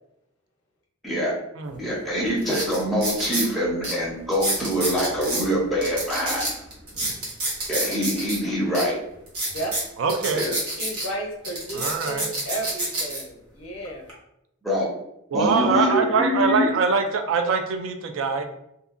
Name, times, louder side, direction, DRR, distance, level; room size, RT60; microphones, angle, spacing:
sound 1, 1.7-1.8 2.4-3.5 3.8-3.9 4.3-5.4 5.8-8.4 8.7-8.8 9.3-11.1 11.4-13.2 13.8-14.1, right 2 dB, 90° right, 0.9 m, -28 dB
voice 1, 1.8-6.5 7.7-9.0 10.3-10.6 14.6-14.9 15.3-16.7, equal, ahead, -6 dB, 0.5 m, -24 dB
voice 2, 10.0-10.4 11.7-12.3 15.3-18.5, right 4 dB, 65° right, 6 dB, 0.3 m, -23 dB
voice 3, 10.8-14.1, right 1 dB, 70° left, 0 dB, 0.6 m, -33 dB
2.6 x 2.2 x 2.4 m, 0.80 s
head